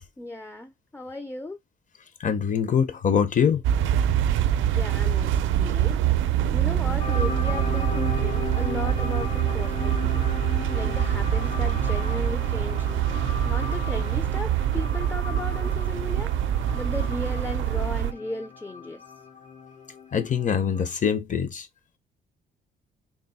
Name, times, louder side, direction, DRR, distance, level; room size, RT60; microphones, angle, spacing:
voice 1, 0.2-1.6 4.7-10.3 10.7-19.1, left 2 dB, 10° left, 0.4 m, -36 dB
voice 2, 2.2-3.6 20.1-21.7, left 7 dB, 40° left, 0.7 m, -23 dB
sound 1, 3.6-18.1, right 11 dB, 75° right, 0.4 m, -25 dB
sound 2, 7.0-21.0, left 6 dB, 70° left, 2.1 m, -37 dB
3.6 x 2.1 x 4.1 m
cardioid pair, 90°, 20 cm